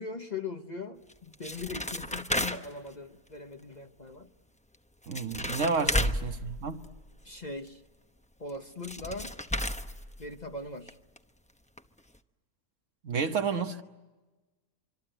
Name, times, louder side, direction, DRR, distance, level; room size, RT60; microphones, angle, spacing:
voice 1, 0.0-4.3 5.8-6.1 7.2-7.8 8.4-9.3 10.2-10.9, left 3 dB, 35° left, 1.1 m, -40 dB
sound 1, 1.1-2.9 4.7-4.8 5.0-7.3 8.5-8.6 8.8-10.5 10.9-11.0 11.2-11.3 11.8-11.9 12.1-12.2, left 1 dB, 5° left, 0.6 m, -33 dB
voice 2, 5.1-6.8 13.0-13.8, right 5 dB, 60° right, 1.5 m, -31 dB
25.5 x 24.5 x 9.1 m
omnidirectional pair, 1.5 m